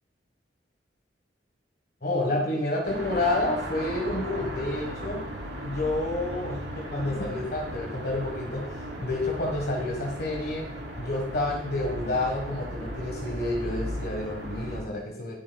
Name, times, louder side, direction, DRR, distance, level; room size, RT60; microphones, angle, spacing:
voice 1, 2.0-5.3 5.6-10.7 11.0-15.4, left 2 dB, 55° left, 0 dB, 1.4 m, -29 dB
sound 1, 2.8-14.8, equal, 85° right, 3.1 m, -36 dB
18.0 x 7.2 x 2.3 m, 0.75 s
head